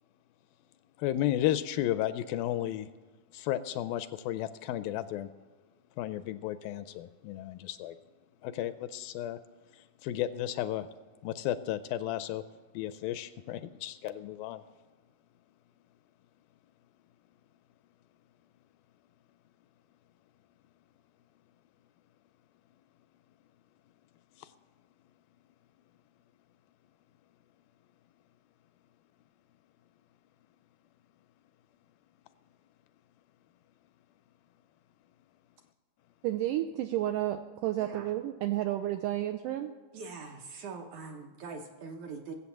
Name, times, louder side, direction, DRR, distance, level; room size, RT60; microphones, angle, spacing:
voice 1, 1.0-2.9 3.3-5.3 6.0-8.0 8.4-9.4 9.7-10.9 11.2-12.4 12.7-14.6 24.4-24.5, left 12 dB, 80° left, 13 dB, 2.2 m, -33 dB
voice 2, 36.2-39.7, right 13 dB, 85° right, 7 dB, 1.9 m, -31 dB
voice 3, 37.8-38.1 39.9-42.3, right 4 dB, 70° right, 3 dB, 2.0 m, -43 dB
17.5 x 8.1 x 7.1 m, 1.4 s
omnidirectional pair, 4.3 m